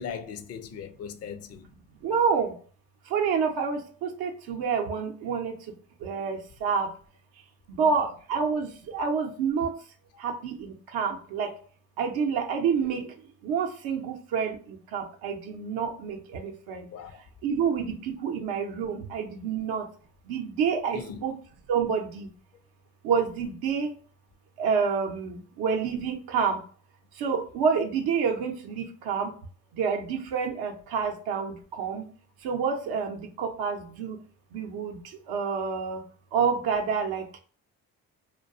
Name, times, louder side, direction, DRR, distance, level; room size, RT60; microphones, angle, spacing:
voice 1, 0.0-1.7 7.8-8.1 16.9-17.2 20.9-21.2, left 7 dB, 45° left, 0.4 m, -39 dB
voice 2, 2.0-2.5 3.1-5.5 6.0-6.9 7.8-8.7 8.9-9.7 10.2-11.5 12.0-13.0 13.4-14.6 14.9-16.8 17.4-18.0 18.2-19.8 20.3-21.3 21.7-22.3 23.0-23.9 24.6-26.6 27.2-29.3 29.8-32.0 32.4-34.2 34.5-35.0 35.3-36.0 36.3-37.2, right 6 dB, 75° right, 0.6 m, -28 dB
2.3 x 2.2 x 2.5 m
supercardioid pair, 65°, 37 cm